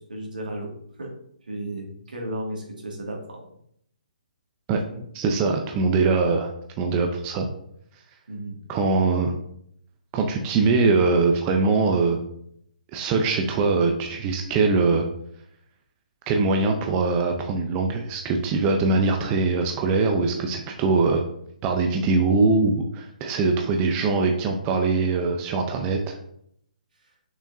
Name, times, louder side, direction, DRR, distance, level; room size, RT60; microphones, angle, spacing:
voice 1, 0.1-0.7 1.0-1.1 1.5-3.5 4.9-5.0 8.3-8.6, right 1 dB, 80° right, -1 dB, 2.1 m, -34 dB
voice 2, 5.1-6.5 6.8-7.5 8.7-9.3 10.1-12.2 12.9-15.1 16.3-21.2 21.6-26.1, right 4 dB, 25° right, 3 dB, 0.6 m, -22 dB
6.4 x 6.1 x 2.7 m, 0.71 s
figure-of-eight pair, 140°, 5 cm